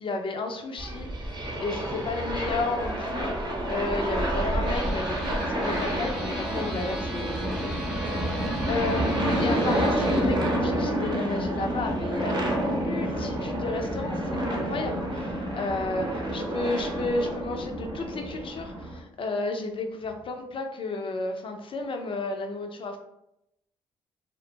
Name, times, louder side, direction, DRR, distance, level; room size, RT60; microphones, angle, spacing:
voice 1, 0.0-23.0, left 3 dB, 45° left, 4 dB, 0.6 m, -33 dB
sound 1, 0.8-19.0, right 1 dB, 35° right, 0.8 m, -29 dB
sound 2, 4.6-10.2, right 1 dB, 5° right, 1.0 m, -37 dB
2.4 x 2.1 x 2.9 m, 0.81 s
hypercardioid pair, 55°, 12 cm